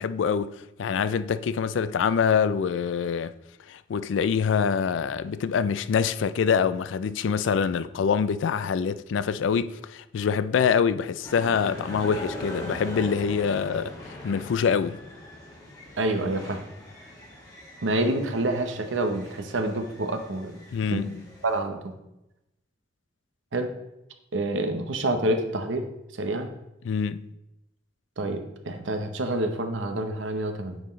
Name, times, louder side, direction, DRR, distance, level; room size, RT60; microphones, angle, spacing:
voice 1, 0.0-3.3 3.7-15.0 20.7-21.2 26.8-27.3, left 6 dB, 85° left, 0.4 m, -25 dB
sound 1, 11.2-21.6, left 1 dB, 20° left, 1.9 m, -41 dB
voice 2, 16.0-16.6 17.8-20.5 20.9-21.2 21.4-21.9 23.5-23.7 24.3-25.9 26.1-26.5 28.2-30.8, right 1 dB, 90° right, 0.8 m, -27 dB
8.9 x 4.5 x 3.1 m
head